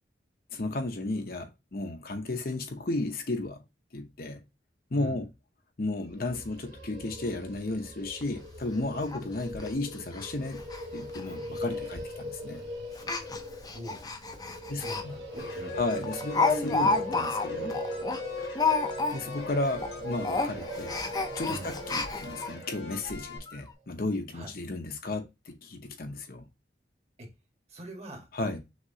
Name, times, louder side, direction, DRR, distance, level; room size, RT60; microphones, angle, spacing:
voice 1, 0.5-3.6 3.9-4.4 4.9-5.3 5.8-10.6 10.9-12.6 14.7-15.1 15.8-17.8 19.1-21.0 21.3-26.5 28.3-28.6, left 2 dB, 55° left, 0.8 m, -34 dB
voice 2, 4.9-5.2 13.6-14.0 14.7-15.8 21.5-21.7 24.3-24.5 27.2-27.3 27.7-28.3, equal, 35° right, 1.7 m, -43 dB
sound 1, 6.1-23.1, equal, 80° right, 1.6 m, -40 dB
Speech, 8.2-8.3 8.6-8.7 9.1-9.2 9.5-9.7 10.1-10.3 10.5-10.8 11.1-11.2 12.0-12.2 12.9-15.0 15.4-15.5 15.9-19.4 19.7-19.9 20.2-22.5 23.1-23.2 23.5-23.6, left 3 dB, 20° left, 0.6 m, -30 dB
sound 2, 15.4-23.4, left 4 dB, 75° left, 1.3 m, -44 dB
6.1 x 2.9 x 2.7 m
head